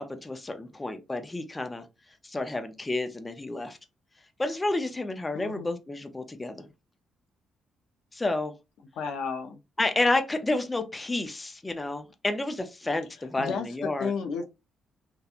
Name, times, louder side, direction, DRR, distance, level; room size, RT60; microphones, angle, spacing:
voice 1, 0.0-1.8 2.2-3.8 4.4-6.7 8.1-8.5 9.8-14.1, left 2 dB, 20° left, 0.4 m, -30 dB
voice 2, 5.3-5.8 9.0-9.6 13.4-14.4, left 5 dB, 80° left, 0.4 m, -32 dB
2.8 x 2.2 x 2.4 m
cardioid pair, 90°, 0 cm